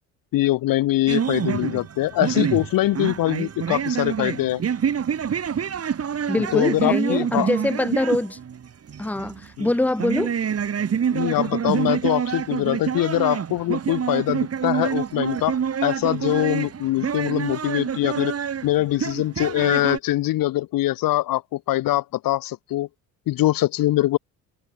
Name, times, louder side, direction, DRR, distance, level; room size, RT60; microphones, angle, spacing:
voice 1, 0.3-4.6 6.5-7.5 9.6-9.7 11.1-18.3 18.6-22.9 23.3-24.2, left 15 dB, 50° left, 1.3 m, -23 dB
sound 1, 1.1-20.0, right 7 dB, 30° right, 2.1 m, -27 dB
voice 2, 6.3-8.4 9.0-10.3, left 2 dB, 5° left, 1.3 m, -24 dB
figure-of-eight pair, 50°, 45 cm